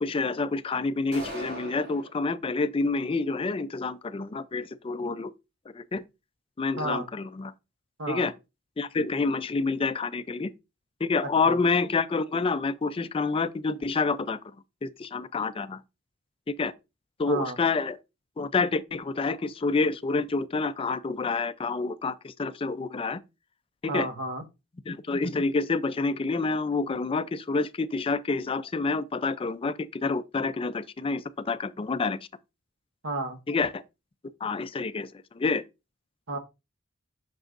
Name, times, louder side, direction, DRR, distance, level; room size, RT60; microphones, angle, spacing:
voice 1, 0.0-5.3 5.7-6.0 6.6-7.5 8.1-8.3 8.8-10.5 11.0-14.4 14.8-15.8 16.5-16.7 17.2-18.0 18.4-23.2 23.8-24.1 24.9-32.2 33.5-33.8 34.4-35.1 35.3-35.6, left 4 dB, 25° left, 0.4 m, -28 dB
sound 1, 1.1-2.1, equal, 50° right, 4.6 m, -38 dB
voice 2, 23.9-24.4 33.0-33.4 36.3-36.4, right 2 dB, 75° right, 1.3 m, -31 dB
7.8 x 6.1 x 2.5 m
head